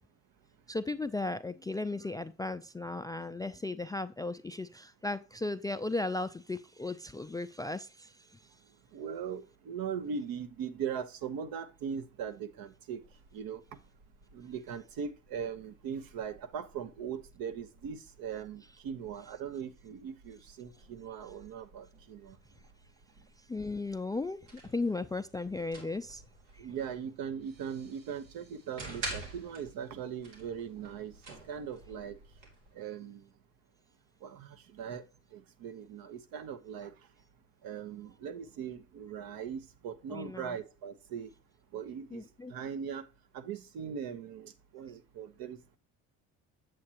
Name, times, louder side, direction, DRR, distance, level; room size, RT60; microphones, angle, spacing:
voice 1, 0.7-8.6 23.4-26.2 26.5-26.7 40.1-40.6 42.1-42.5, left 2 dB, 10° left, 0.3 m, -36 dB
voice 2, 8.9-13.0 13.3-13.6 14.3-22.4 26.6-31.1 31.5-32.2 32.7-33.2 34.2-35.0 35.3-36.9 37.6-41.3 41.7-42.2 42.5-43.0 43.3-45.8, right 7 dB, 65° right, 1.0 m, -40 dB
sound 1, 13.0-32.7, right 2 dB, 80° right, 2.6 m, -50 dB
sound 2, 27.3-32.4, right 4 dB, 45° right, 5.5 m, -70 dB
7.7 x 7.6 x 2.9 m
hypercardioid pair, 60°, 38 cm